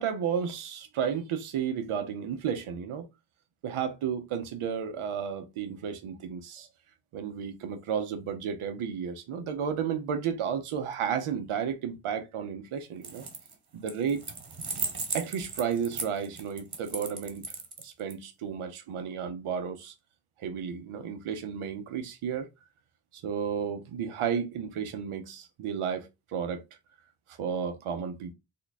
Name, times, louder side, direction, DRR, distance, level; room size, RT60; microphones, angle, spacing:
voice 1, 0.0-3.1 3.6-6.7 7.1-13.2 13.7-14.3 15.1-17.5 17.8-19.9 20.4-22.5 23.1-26.6 27.3-28.3, right 7 dB, 90° right, 0.8 m, -32 dB
sound 1, 13.0-13.5 13.9-18.1, right 4 dB, 50° right, 1.5 m, -36 dB
3.7 x 2.3 x 4.1 m
supercardioid pair, 45°, 48 cm